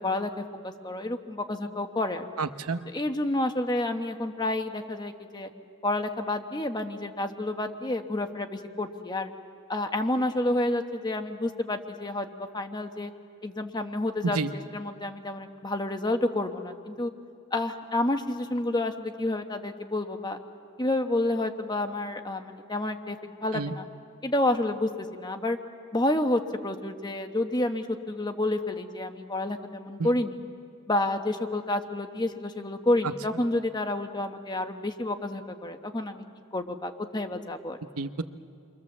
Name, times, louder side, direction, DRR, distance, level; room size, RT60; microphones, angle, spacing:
voice 1, 0.0-2.2 2.9-5.5 5.8-9.3 9.7-12.3 12.5-13.1 13.4-17.1 17.5-20.4 20.8-23.8 24.2-25.6 25.9-30.4 30.9-36.2 36.5-37.8, left 1 dB, 20° left, 6 dB, 1.0 m, -29 dB
voice 2, 2.4-2.8 14.2-14.5 23.5-23.7 30.0-30.1 33.0-33.1 38.0-38.2, right 4 dB, 80° right, 11 dB, 0.9 m, -29 dB
29.0 x 24.0 x 7.3 m, 2.4 s
head